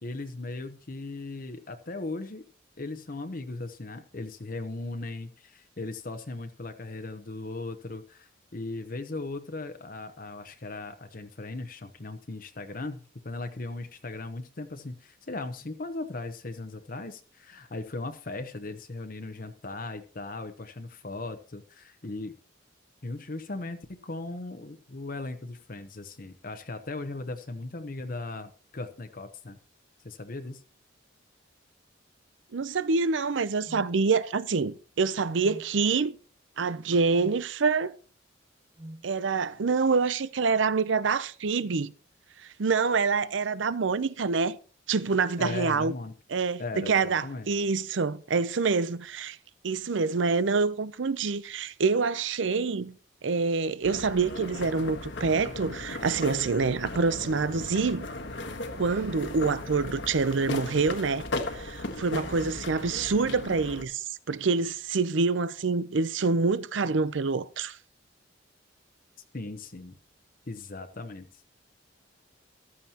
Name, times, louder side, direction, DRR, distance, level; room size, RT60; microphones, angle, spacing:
voice 1, 0.0-2.4 2.8-22.3 23.0-29.6 30.0-30.6 45.4-46.1 46.6-47.5 69.3-70.0 70.5-71.5, left 2 dB, 45° left, 0.8 m, -38 dB
voice 2, 32.5-36.2 36.6-37.9 39.0-41.9 42.4-44.6 44.9-45.9 46.3-49.4 49.6-53.0 53.2-58.1 58.7-67.8, right 4 dB, 75° right, 0.6 m, -26 dB
sound 1, 33.7-33.9 35.4-35.7 37.1-37.4 38.8-39.1, right 1 dB, 20° right, 0.6 m, -43 dB
sound 2, 53.8-63.8, left 2 dB, 70° left, 1.3 m, -37 dB
14.5 x 12.5 x 2.9 m
head